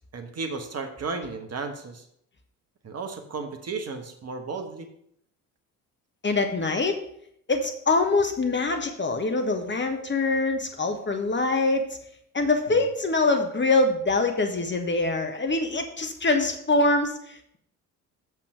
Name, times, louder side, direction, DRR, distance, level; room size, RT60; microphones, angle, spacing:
voice 1, 0.0-2.0 2.8-4.9 12.7-12.8, right 4 dB, 35° right, 5 dB, 1.2 m, -34 dB
voice 2, 6.2-7.0 7.5-11.9 12.3-17.6, left 3 dB, 25° left, 5 dB, 1.1 m, -24 dB
7.4 x 4.6 x 6.3 m, 0.71 s
figure-of-eight pair, 50°, 46 cm